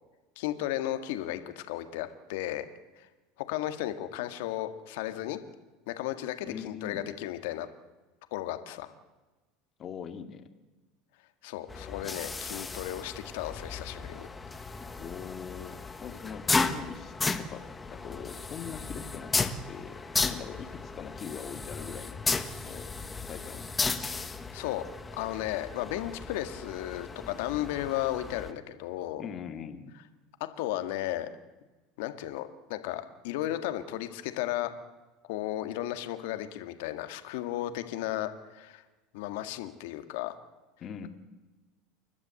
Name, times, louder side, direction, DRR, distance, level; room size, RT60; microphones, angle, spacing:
voice 1, 0.4-2.7 3.0-3.1 3.5-5.4 5.9-7.7 8.3-8.9 11.4-14.3 24.0-24.8 25.1-29.2 30.6-31.3 32.0-34.7 35.2-38.8 39.1-40.3, left 14 dB, 75° left, 9 dB, 1.8 m, -34 dB
voice 2, 6.4-7.1 9.8-10.5 15.0-15.8 16.0-19.3 19.7-22.1 22.6-22.9 23.2-23.7 29.2-29.9 40.8-41.1, left 7 dB, 35° left, 7 dB, 2.1 m, -42 dB
sound 1, 11.7-28.5, left 4 dB, 15° left, 1.3 m, -35 dB
29.5 x 12.0 x 7.8 m, 1.2 s
supercardioid pair, 120°, 0 cm